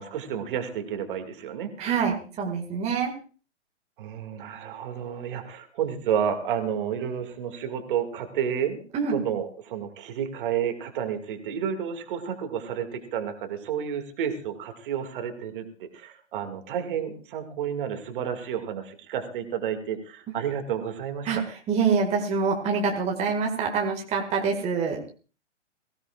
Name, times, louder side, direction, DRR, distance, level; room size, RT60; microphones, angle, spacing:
voice 1, 0.0-1.7 4.0-8.8 9.1-21.3, right 8 dB, 45° right, 6 dB, 2.3 m, -31 dB
voice 2, 1.8-3.1 8.9-9.2 21.3-21.4 21.7-25.0, right 5 dB, 20° right, 1 dB, 2.0 m, -25 dB
22.5 x 16.5 x 2.5 m, 0.38 s
figure-of-eight pair, 125°, 36 cm